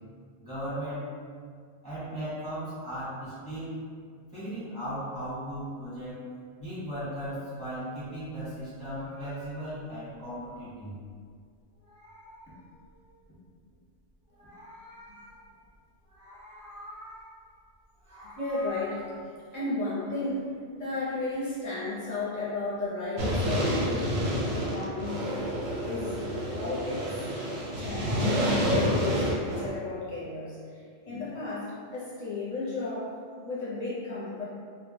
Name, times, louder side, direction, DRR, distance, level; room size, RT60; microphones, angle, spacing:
voice 1, 0.4-1.1 1.8-3.8 4.3-6.2 6.6-10.9, equal, 5° left, -11 dB, 0.7 m, -36 dB
Meow, 8.8-11.3 11.6-13.3 14.1-15.7 16.0-17.5 17.8-19.2, equal, 45° right, 0.5 m, -49 dB
voice 2, 18.4-19.1 19.5-25.3 25.9-27.3 27.7-34.4, left 2 dB, 45° left, -9 dB, 0.7 m, -34 dB
sound 1, 23.2-29.7, equal, 90° right, 0.9 m, -28 dB
2.2 x 2.1 x 3.1 m, 2.1 s
omnidirectional pair, 1.2 m